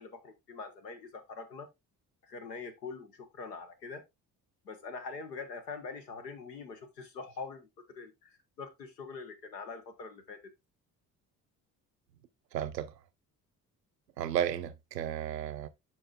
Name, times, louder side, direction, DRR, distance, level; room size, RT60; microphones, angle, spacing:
voice 1, 0.0-1.7 2.2-4.0 4.6-7.7 7.9-10.5, left 4 dB, 80° left, 1.1 m, -44 dB
voice 2, 12.5-12.9 14.2-15.7, right 10 dB, 85° right, 0.6 m, -33 dB
12.0 x 4.5 x 2.3 m
figure-of-eight pair, 45°, 48 cm